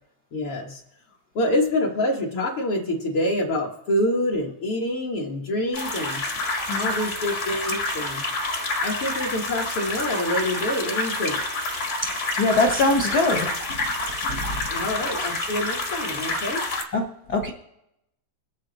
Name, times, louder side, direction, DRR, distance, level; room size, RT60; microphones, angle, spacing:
voice 1, 0.3-0.8 1.4-6.2 6.8-8.2 8.8-11.4 14.7-16.6, left 1 dB, 55° left, -3 dB, 1.9 m, -26 dB
sound 1, 5.7-16.8, left 2 dB, 35° left, 1.1 m, -28 dB
voice 2, 12.4-13.5 14.2-14.4 16.9-17.5, left 2 dB, 75° left, 1 dB, 0.9 m, -22 dB
22.5 x 8.6 x 3.9 m, 0.81 s
omnidirectional pair, 3.4 m